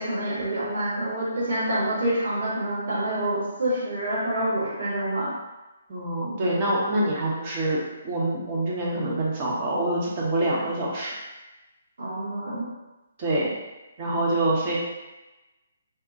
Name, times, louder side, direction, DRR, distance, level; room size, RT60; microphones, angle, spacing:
voice 1, 0.0-5.3 12.0-12.7, right 1 dB, 55° right, -8 dB, 1.4 m, -27 dB
voice 2, 5.9-7.8 8.0-11.1 13.2-13.5 14.0-14.8, right 1 dB, 30° right, -5 dB, 0.9 m, -25 dB
3.5 x 2.3 x 2.7 m, 1.1 s
figure-of-eight pair, 135°, 0 cm